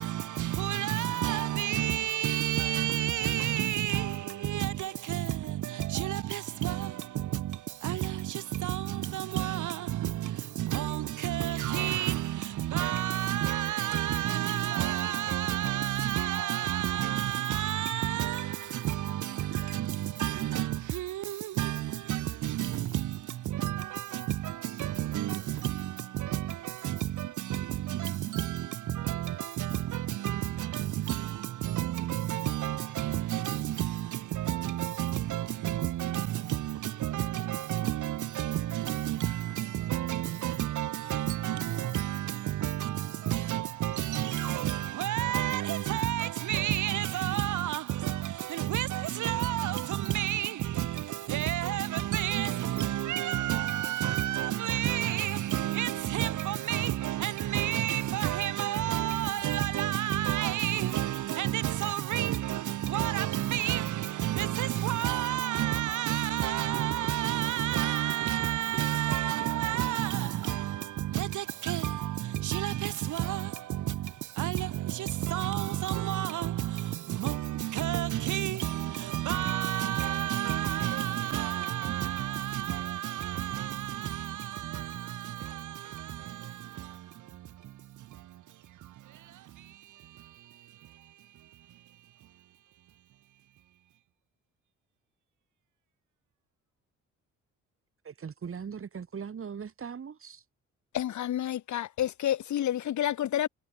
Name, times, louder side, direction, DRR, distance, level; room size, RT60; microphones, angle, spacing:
voice 1, 0.0-88.4 88.8-91.5, right 13 dB, 75° right, 2.9 m, -31 dB
voice 2, 98.0-100.4, right 6 dB, 45° right, 7.0 m, -40 dB
voice 3, 100.9-103.5, left 11 dB, 70° left, 3.4 m, -29 dB
cardioid pair, 90°, 30 cm